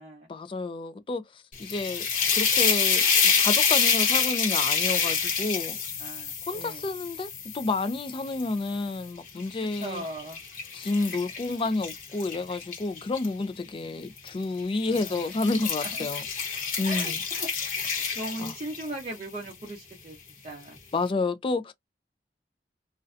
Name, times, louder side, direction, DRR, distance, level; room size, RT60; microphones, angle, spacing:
voice 1, 0.3-2.1 2.3-5.8 6.5-7.3 7.5-10.0 10.7-16.2 16.8-17.2 18.4-18.5 20.9-21.7, left 3 dB, 30° left, 0.3 m, -30 dB
sound 1, 1.5-8.7 9.3-13.3 14.2-14.4 14.8-19.0, left 6 dB, 50° left, 0.9 m, -27 dB
voice 2, 6.0-6.8 9.8-10.4 14.9-15.2 15.8-15.9 16.8-17.5 17.7-20.2 20.4-20.8, right 1 dB, 35° right, 0.6 m, -38 dB
2.5 x 2.1 x 2.4 m
head